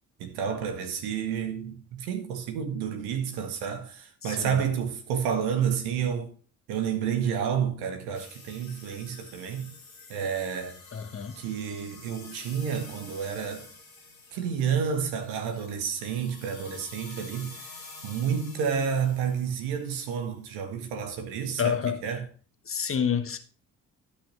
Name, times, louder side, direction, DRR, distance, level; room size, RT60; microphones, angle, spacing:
voice 1, 0.2-6.3 6.7-9.8 10.1-10.8 11.4-13.7 14.3-21.8 22.0-22.3, right 7 dB, 65° right, 1.5 m, -30 dB
voice 2, 4.2-4.6 10.9-11.4 21.6-22.2 22.7-23.4, left 7 dB, 30° left, 1.2 m, -29 dB
sound 1, 8.1-20.4, left 3 dB, 85° left, 1.5 m, -49 dB
12.0 x 5.5 x 4.1 m
figure-of-eight pair, 40°, 41 cm